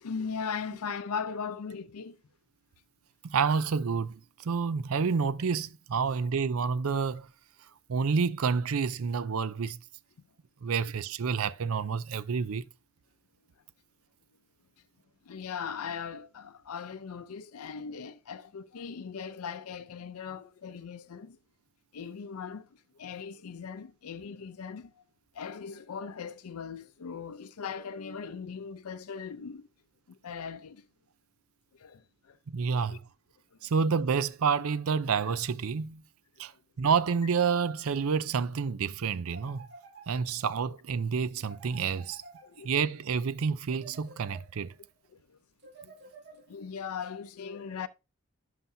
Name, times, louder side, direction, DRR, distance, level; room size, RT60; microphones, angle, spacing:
voice 1, 0.0-2.2 15.3-21.4 21.9-22.6 23.0-24.9 25.4-29.6 30.2-30.8 31.8-32.0 32.7-33.0 40.1-40.2 42.4-42.7 46.5-47.9, left 6 dB, 85° left, 0.5 m, -39 dB
voice 2, 3.2-7.3 7.9-9.8 10.6-12.7 32.5-33.0 33.6-36.0 36.4-36.5 36.8-39.7 40.1-42.2 42.6-44.7, right 5 dB, 75° right, 0.5 m, -29 dB
sound 1, 39.3-40.6 41.4-43.0 43.7-44.8 45.6-46.8, right 3 dB, 50° right, 1.5 m, -52 dB
11.0 x 5.7 x 2.7 m
head